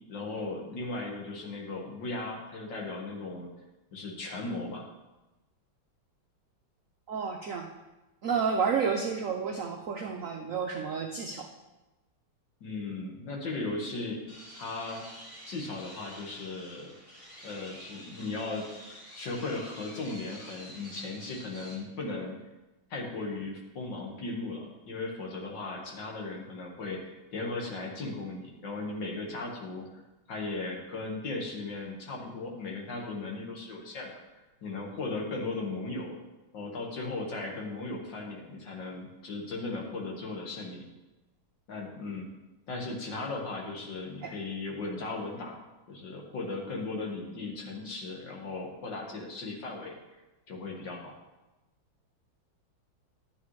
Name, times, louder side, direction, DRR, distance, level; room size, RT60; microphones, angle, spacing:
voice 1, 0.1-3.5 3.9-4.8 12.6-14.2 14.6-16.9 17.4-18.7 19.2-22.4 22.9-29.9 30.3-34.1 34.6-36.2 36.5-40.8 41.7-42.3 42.7-45.6 45.9-49.9 50.5-51.2, left 3 dB, 60° left, -1 dB, 2.2 m, -37 dB
voice 2, 7.1-7.7 8.2-11.5 44.2-44.3, right 6 dB, 85° right, 3 dB, 0.7 m, -30 dB
sound 1, 14.3-21.7, equal, 35° left, 3.7 m, -49 dB
11.5 x 8.7 x 3.2 m, 1.1 s
omnidirectional pair, 2.3 m